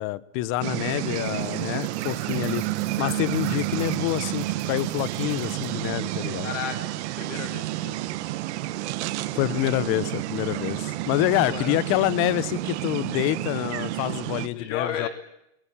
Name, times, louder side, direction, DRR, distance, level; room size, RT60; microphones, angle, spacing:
voice 1, 0.0-2.7 3.0-6.5 9.3-15.1, left 16 dB, 35° left, 0.9 m, -27 dB
sound 1, 0.6-14.5, right 16 dB, 55° right, 1.6 m, -30 dB
sound 2, 1.0-5.9, right 10 dB, 25° right, 3.2 m, -50 dB
voice 2, 6.4-6.8 7.2-8.0 11.3-11.8 14.5-15.1, left 9 dB, 60° left, 2.9 m, -33 dB
22.5 x 18.0 x 8.6 m
supercardioid pair, 155°, 41 cm